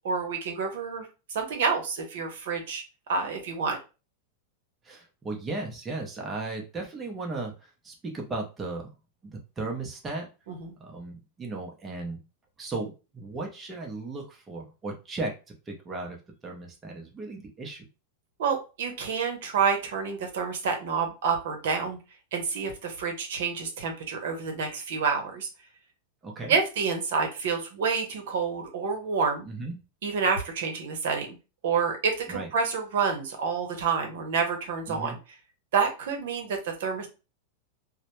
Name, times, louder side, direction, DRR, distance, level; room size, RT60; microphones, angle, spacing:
voice 1, 0.0-2.8 3.1-3.8 10.5-10.7 18.4-22.0 22.3-25.5 26.5-29.5 30.0-31.4 31.6-35.2 35.7-37.1, right 5 dB, 75° right, 4 dB, 0.8 m, -28 dB
voice 2, 4.8-8.9 9.2-10.3 10.8-12.2 12.6-15.3 15.7-16.2 16.4-17.9 26.2-26.6 29.4-29.8 32.3-32.5 34.9-35.2, right 3 dB, 20° right, 0 dB, 0.6 m, -36 dB
2.1 x 2.0 x 3.0 m, 0.31 s
hypercardioid pair, 130°, 0 cm